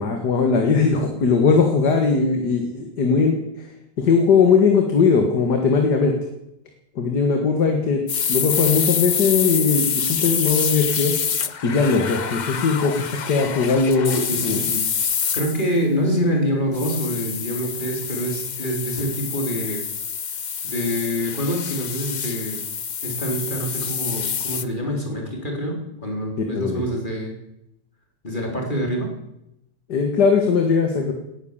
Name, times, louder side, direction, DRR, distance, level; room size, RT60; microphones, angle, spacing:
voice 1, 0.0-3.4 4.0-6.1 7.0-8.0 8.3-11.2 11.6-14.2 14.4-14.6 26.5-26.8 29.9-31.1, left 5 dB, 70° left, 3 dB, 2.4 m, -19 dB
sound 1, 8.1-15.7 16.7-24.6, left 7 dB, 85° left, 0.4 m, -26 dB
voice 2, 14.0-14.9 15.3-19.9 20.6-22.6 23.0-27.4 28.2-29.1, equal, 25° left, 0 dB, 3.9 m, -26 dB
18.5 x 10.5 x 7.3 m, 0.85 s
omnidirectional pair, 1.9 m